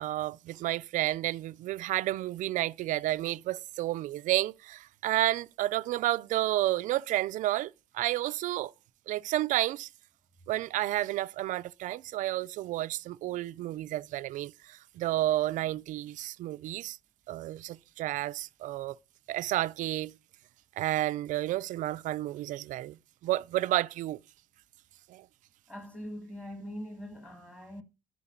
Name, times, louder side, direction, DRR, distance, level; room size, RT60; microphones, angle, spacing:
voice 1, 0.0-8.7 9.1-9.9 10.5-17.0 17.3-19.0 19.3-20.1 20.8-24.2 25.1-25.3, right 15 dB, 50° right, 0.5 m, -31 dB
voice 2, 25.7-27.8, equal, 5° left, 1.6 m, -42 dB
13.0 x 4.7 x 8.5 m
cardioid pair, 175°, 16 cm